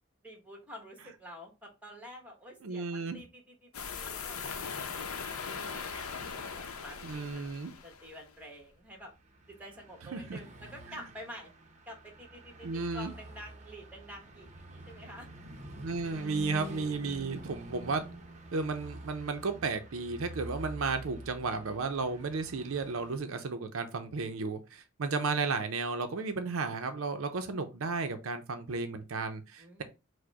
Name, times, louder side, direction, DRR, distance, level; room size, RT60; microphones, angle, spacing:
voice 1, 0.2-9.1 9.5-11.5 11.9-15.3 29.6-29.8, equal, 5° right, 1.2 m, -49 dB
voice 2, 2.6-3.2 7.0-7.7 10.1-10.4 10.9-11.0 12.6-13.1 15.8-18.0 18.5-29.8, right 4 dB, 70° right, 0.6 m, -34 dB
sound 1, 3.7-8.2, left 6 dB, 85° left, 0.6 m, -40 dB
Car passing by / Truck, 8.8-23.2, equal, 35° right, 0.7 m, -47 dB
4.8 x 2.1 x 4.6 m
head